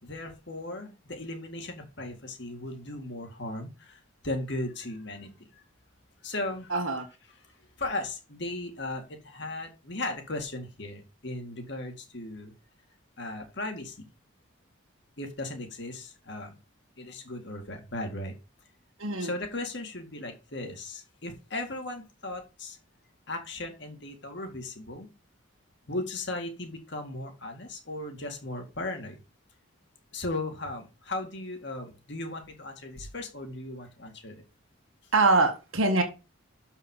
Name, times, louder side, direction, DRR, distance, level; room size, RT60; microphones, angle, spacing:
voice 1, 0.0-4.0 4.2-5.5 6.2-6.7 7.8-12.5 13.2-14.1 15.2-16.6 17.0-18.3 19.2-22.8 23.3-25.1 25.9-29.2 30.1-34.4, left 2 dB, 55° left, 2.1 m, -37 dB
voice 2, 6.7-7.1 19.0-19.3 35.1-36.0, right 3 dB, 80° right, 1.6 m, -23 dB
7.1 x 5.6 x 5.5 m
head